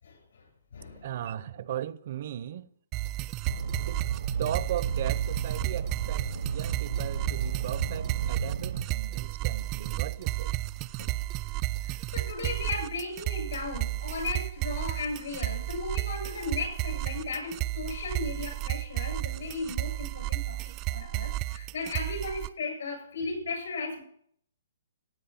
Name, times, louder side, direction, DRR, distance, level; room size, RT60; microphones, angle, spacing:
voice 1, 0.0-0.5 0.7-1.1 11.8-20.6 20.9-24.0, left 3 dB, 70° left, 7.8 m, -36 dB
voice 2, 1.0-2.7 3.8-4.0 4.4-10.6, right 11 dB, 50° right, 0.8 m, -37 dB
sound 1, 2.9-22.5, right 17 dB, 25° right, 0.4 m, -33 dB
sound 2, 3.5-8.8, right 6 dB, 70° right, 1.1 m, -33 dB
17.0 x 8.4 x 5.6 m
hypercardioid pair, 150°, 0 cm